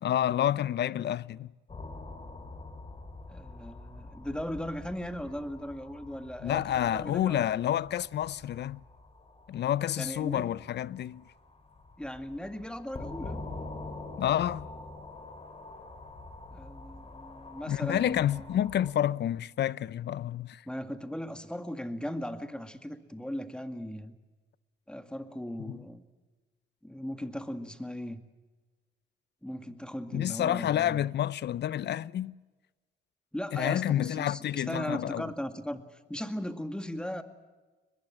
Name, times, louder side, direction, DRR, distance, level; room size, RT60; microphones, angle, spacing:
voice 1, 0.0-1.5 6.4-8.8 9.5-11.2 14.2-14.6 17.7-20.6 25.6-25.8 30.1-32.3 33.5-35.3, left 11 dB, 60° left, 0.6 m, -29 dB
sound 1, 1.7-18.9, left 2 dB, 30° left, 4.2 m, -46 dB
voice 2, 3.3-7.4 10.0-10.5 12.0-13.4 16.5-18.5 20.7-24.1 24.9-26.0 26.8-28.2 29.4-31.0 33.3-37.2, equal, 5° left, 2.0 m, -38 dB
23.0 x 21.0 x 7.3 m
cardioid pair, 90°, 20 cm